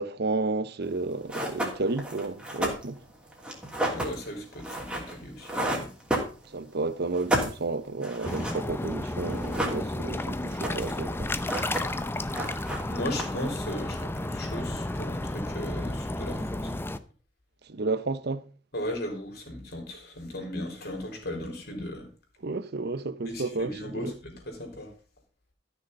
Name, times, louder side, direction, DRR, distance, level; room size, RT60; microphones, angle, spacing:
voice 1, 0.0-3.0 6.4-11.3 17.6-18.5 22.4-24.1, right 3 dB, 60° right, 0.8 m, -32 dB
sound 1, 0.9-1.0 1.3-6.8 7.1-8.7 8.9-9.0 9.2-10.2 10.4-11.0 11.3-12.1 12.3-13.5, right 1 dB, 5° right, 2.9 m, -32 dB
voice 2, 3.9-5.9 12.4-12.5 12.9-16.8 18.7-22.1 23.3-24.9, left 1 dB, 55° left, 4.1 m, -36 dB
sound 2, 8.2-17.0, left 1 dB, 10° left, 0.6 m, -32 dB
13.5 x 6.5 x 5.3 m
head